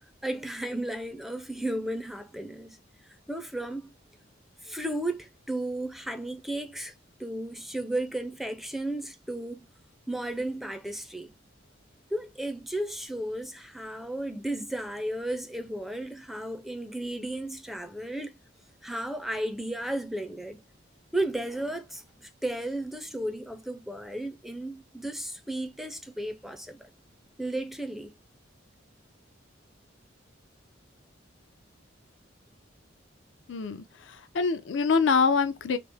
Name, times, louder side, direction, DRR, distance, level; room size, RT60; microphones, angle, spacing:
voice 1, 0.2-2.8 3.3-3.9 4.6-6.9 7.2-9.7 10.1-11.3 12.1-18.3 18.8-20.6 21.1-26.9 27.4-28.1, right 1 dB, ahead, 0.3 m, -34 dB
voice 2, 33.5-33.8 34.3-35.8, left 5 dB, 85° left, 0.5 m, -24 dB
3.0 x 2.7 x 3.4 m
head